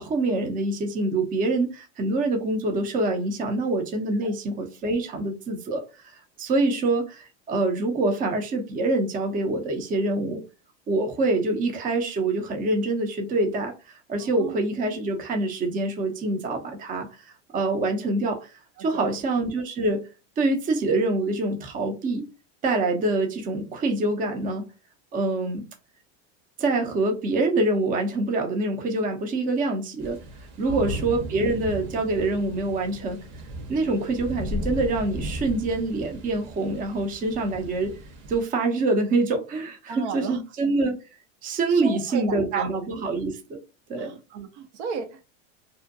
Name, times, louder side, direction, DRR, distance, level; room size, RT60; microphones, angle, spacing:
voice 1, 0.0-10.4 10.9-17.1 17.5-18.5 18.8-20.1 20.4-22.3 22.6-24.6 25.1-25.6 26.6-30.2 30.6-33.2 33.7-37.9 38.3-40.9 41.4-43.6 43.9-44.1, right 2 dB, 25° right, 0.5 m, -25 dB
voice 2, 14.2-14.6 18.8-19.2 30.7-30.9 39.9-40.4 41.7-42.7 44.0-45.2, right 6 dB, 75° right, 0.7 m, -34 dB
sound 1, 30.0-38.4, equal, 45° right, 0.9 m, -36 dB
2.5 x 2.1 x 2.5 m
supercardioid pair, 115°, 35 cm